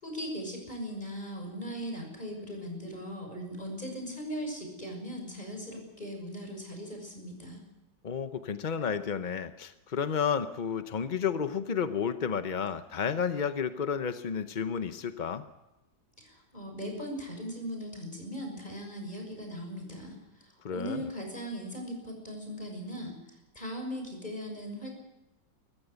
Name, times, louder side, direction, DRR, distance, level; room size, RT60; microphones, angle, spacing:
voice 1, 0.0-7.6 16.2-23.1 23.5-24.9, equal, 25° left, 2 dB, 6.3 m, -39 dB
voice 2, 8.0-15.4 20.6-21.1, left 7 dB, 50° left, 9 dB, 0.5 m, -31 dB
24.0 x 14.5 x 8.2 m, 0.99 s
omnidirectional pair, 2.0 m